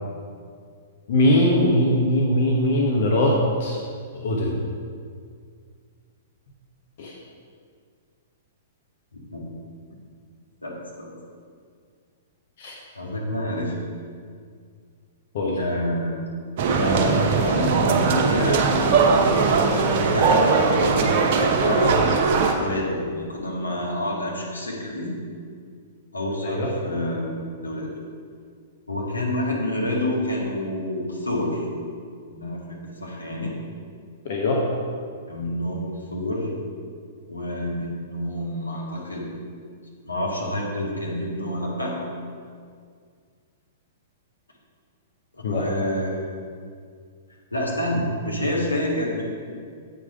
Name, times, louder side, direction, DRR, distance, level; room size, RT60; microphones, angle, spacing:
voice 1, 1.1-3.8 4.1-4.5 7.0-7.1 12.6-12.7 15.3-15.6 26.4-26.7 34.2-34.6 45.4-45.7, left 1 dB, 50° left, -3 dB, 1.1 m, -21 dB
voice 2, 9.1-9.4 10.6-11.1 13.0-13.8 15.6-16.2 16.7-18.6 19.0-21.1 21.6-22.2 22.5-25.2 26.1-27.3 27.6-27.9 28.9-31.7 32.3-33.5 35.3-36.5 37.3-39.3 40.0-42.0 45.3-46.2 47.5-49.2, left 1 dB, 80° left, -3 dB, 1.8 m, -28 dB
sound 1, 16.6-22.5, right 4 dB, 45° right, 0.9 m, -20 dB
8.4 x 4.9 x 5.0 m, 2.1 s
figure-of-eight pair, 105°, 0 cm